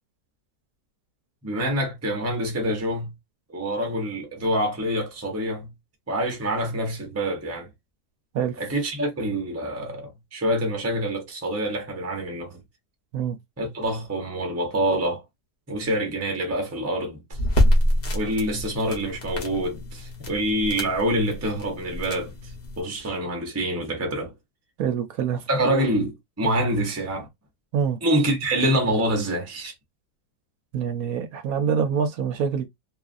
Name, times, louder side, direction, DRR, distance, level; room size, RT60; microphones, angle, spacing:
voice 1, 1.4-3.1 3.5-5.7 6.1-7.7 8.6-12.6 13.6-15.2 15.7-17.4 18.1-22.5 22.8-24.3 25.5-27.3 28.0-29.7, right 1 dB, 15° right, 0.5 m, -26 dB
sound 1, 17.3-22.8, equal, 40° left, 1.0 m, -26 dB
voice 2, 24.8-25.4 27.7-28.0 30.7-32.7, right 7 dB, 70° right, 0.9 m, -25 dB
2.9 x 2.4 x 2.4 m
omnidirectional pair, 1.7 m